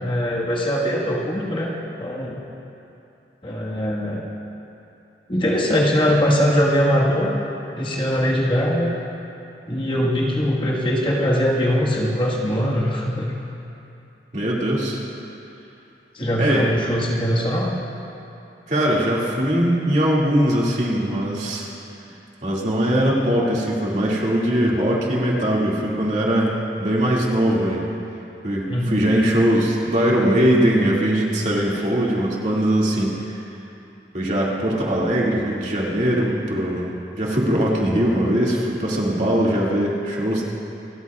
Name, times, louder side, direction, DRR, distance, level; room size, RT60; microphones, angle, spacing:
voice 1, 0.0-1.7 2.0-2.4 3.4-4.3 5.3-7.4 7.8-8.9 9.6-13.3 16.1-17.7 28.7-29.0, equal, 30° left, -4 dB, 1.6 m, -21 dB
voice 2, 14.3-15.0 16.4-16.7 18.7-21.7 22.4-27.9 28.4-33.3 34.1-40.5, right 1 dB, 45° right, -4 dB, 2.3 m, -21 dB
27.5 x 14.0 x 2.4 m, 2.8 s
head